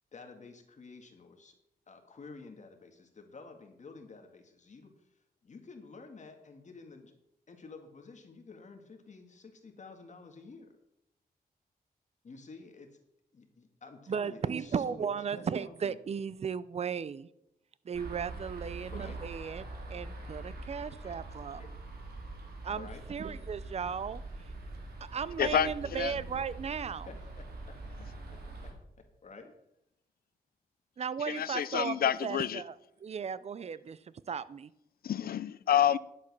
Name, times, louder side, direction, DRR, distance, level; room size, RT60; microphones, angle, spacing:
voice 1, 0.1-1.5 1.9-5.1 5.4-7.1 7.5-10.7 12.2-12.9 13.3-16.0 18.8-19.2 21.0-21.2 21.6-21.7 22.7-23.0 27.1-27.7 28.6-28.7 29.2-29.5, left 4 dB, 50° left, 4 dB, 1.9 m, -50 dB
voice 2, 14.1-17.3 17.8-19.6 19.9-21.6 22.6-24.2 25.0-27.1 31.0-32.7 33.0-34.7, right 7 dB, 40° right, 17 dB, 0.5 m, -36 dB
sound 1, 17.9-28.7, right 2 dB, 85° right, 2.6 m, -44 dB
voice 3, 25.4-26.1 31.3-32.6 35.0-36.0, left 10 dB, 70° left, 17 dB, 0.5 m, -28 dB
11.0 x 7.5 x 6.0 m, 0.83 s
wide cardioid pair, 100°, 16 cm